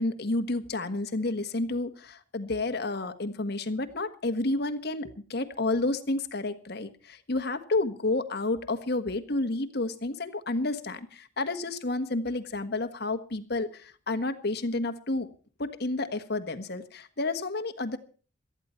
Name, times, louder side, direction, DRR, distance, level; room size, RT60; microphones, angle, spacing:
voice 1, 0.0-15.3 15.6-18.0, left 2 dB, 55° left, 9 dB, 1.5 m, -30 dB
18.0 x 13.0 x 4.4 m, 0.40 s
head